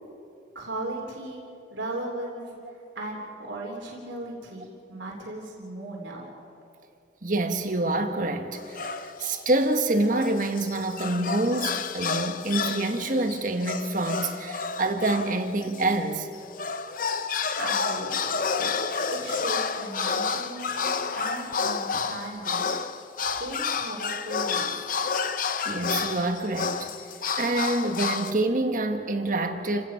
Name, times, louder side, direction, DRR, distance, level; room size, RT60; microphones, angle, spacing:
voice 1, 0.5-1.4 1.7-6.3 17.5-18.7 19.1-22.7 23.4-24.9, right 2 dB, 85° right, 3.3 m, -37 dB
voice 2, 7.2-16.3 21.9-22.0 25.6-26.9 27.4-29.9, right 2 dB, 45° right, 1.6 m, -26 dB
sound 1, 8.5-9.4 9.9-15.9 16.3-28.3, left 5 dB, 45° left, 0.8 m, -30 dB
29.5 x 16.5 x 5.8 m
head